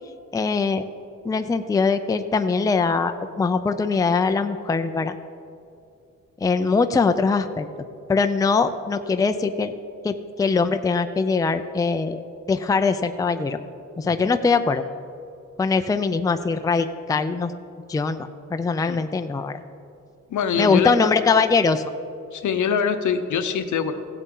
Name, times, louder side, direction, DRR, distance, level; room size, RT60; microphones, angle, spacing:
voice 1, 0.3-0.8 1.2-5.2 6.4-7.7 8.1-9.7 10.0-12.2 12.5-13.6 14.0-14.8 15.6-17.5 17.9-19.6 20.6-21.8, left 4 dB, 10° left, 8 dB, 0.4 m, -22 dB
voice 2, 20.3-21.1 22.3-23.9, left 6 dB, 75° left, 8 dB, 0.8 m, -24 dB
16.0 x 8.1 x 3.8 m, 2.5 s
cardioid pair, 115°, 30 cm